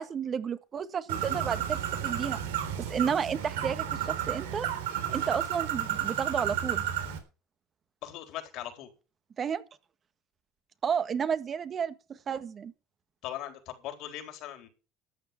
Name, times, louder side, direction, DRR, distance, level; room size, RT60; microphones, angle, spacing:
voice 1, 0.0-2.4 2.8-4.7 5.1-6.8 9.4-9.6 10.8-12.7, right 7 dB, 40° right, 1.6 m, -32 dB
Bird, 1.1-7.2, right 10 dB, 90° right, 3.7 m, -32 dB
voice 2, 8.0-8.9 13.2-14.7, left 12 dB, 65° left, 4.1 m, -39 dB
13.5 x 9.6 x 5.9 m
hypercardioid pair, 75°, 0 cm